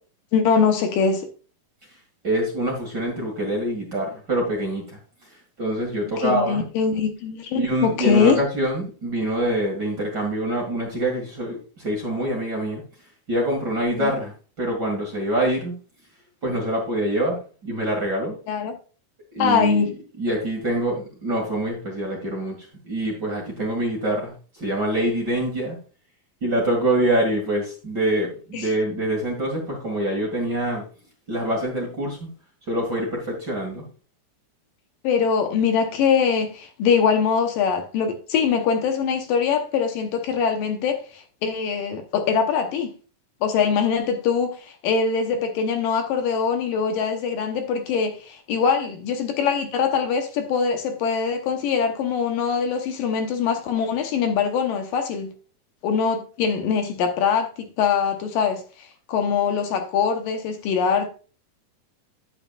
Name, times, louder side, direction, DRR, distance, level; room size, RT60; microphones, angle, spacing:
voice 1, 0.3-1.3 6.2-8.4 14.0-14.1 18.5-18.7 19.4-19.9 28.5-28.7 35.0-42.9 43.4-44.6 44.8-55.3 55.8-57.5 57.8-61.1, left 6 dB, 75° left, 2.5 m, -22 dB
voice 2, 2.2-6.6 7.5-12.8 13.3-15.8 16.4-18.4 19.3-25.8 26.4-30.8 31.3-32.3 32.7-33.8, right 1 dB, 35° right, 2.0 m, -25 dB
9.7 x 9.1 x 2.4 m
omnidirectional pair, 4.2 m